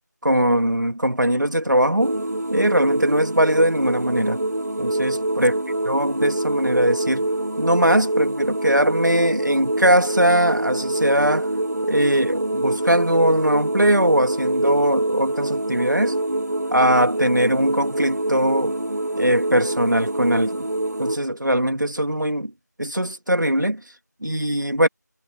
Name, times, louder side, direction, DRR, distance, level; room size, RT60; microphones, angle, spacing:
voice 1, 0.2-2.2 2.5-4.4 4.8-5.6 5.8-7.3 7.6-11.5 11.8-16.2 16.7-18.8 19.2-20.7 21.0-22.5 22.8-23.8 24.2-24.9, right 1 dB, 90° right, 2.4 m, -20 dB
sound 1, 2.0-21.2, right 1 dB, 65° right, 1.5 m, -25 dB
figure-of-eight pair, 175°, 10 cm